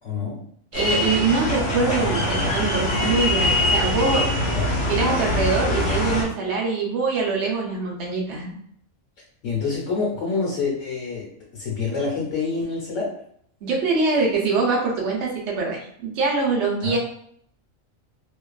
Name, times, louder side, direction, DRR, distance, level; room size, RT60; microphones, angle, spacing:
voice 1, 0.0-0.4 4.5-4.7 9.4-11.3 11.5-13.1 16.8-17.0, left 4 dB, 65° left, -5 dB, 1.0 m, -26 dB
sound 1, 0.7-6.2, left 1 dB, 30° left, 0.7 m, -23 dB
voice 2, 0.7-4.3 4.8-8.5 13.6-17.0, right 4 dB, 60° right, -2 dB, 0.9 m, -23 dB
2.5 x 2.3 x 2.2 m, 0.66 s
omnidirectional pair, 1.4 m